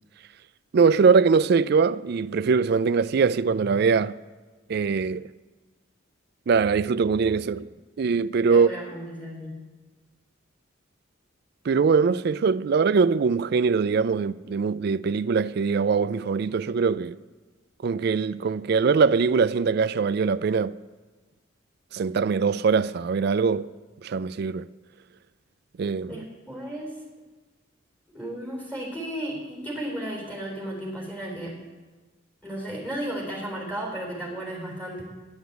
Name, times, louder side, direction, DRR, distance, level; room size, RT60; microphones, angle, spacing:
voice 1, 0.7-4.2 4.7-5.3 6.5-7.7 8.0-8.7 11.6-17.2 17.8-20.8 21.9-23.7 24.0-24.7 25.8-26.2, right 5 dB, 50° right, 0.3 m, -22 dB
voice 2, 8.5-9.6 26.1-27.1 28.1-31.6 32.4-35.0, right 1 dB, 5° left, 3.9 m, -34 dB
10.5 x 9.5 x 8.1 m
head